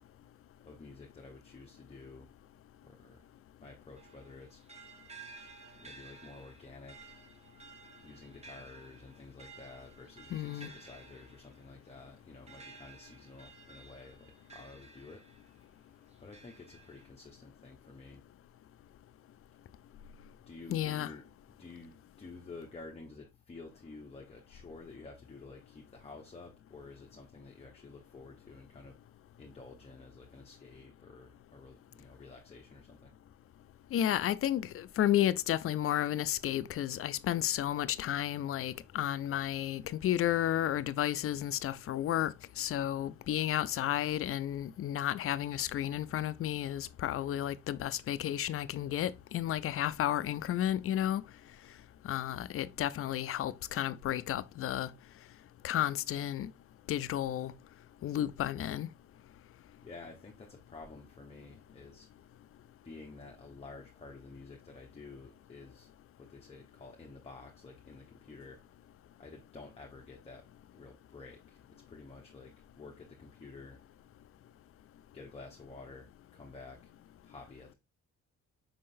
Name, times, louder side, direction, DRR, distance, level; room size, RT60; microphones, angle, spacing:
voice 1, 0.6-2.3 2.8-3.3 3.6-4.6 5.7-7.2 8.0-15.2 16.2-18.2 20.5-21.2 21.6-29.0 29.4-33.1 59.8-62.3 62.8-65.9 66.2-68.6 69.2-70.5 70.7-71.6 71.9-73.8 75.1-76.9 77.2-77.7, left 3 dB, 20° left, 0.8 m, -51 dB
sound 1, 4.0-15.6 16.1-17.1, right 4 dB, 20° right, 0.8 m, -55 dB
voice 2, 10.3-10.7 20.7-21.1 33.9-51.2 52.0-54.9 55.6-56.5 56.9-57.5 58.0-58.9, left 12 dB, 50° left, 0.4 m, -32 dB
5.4 x 3.7 x 2.6 m
cardioid pair, 90°, 30 cm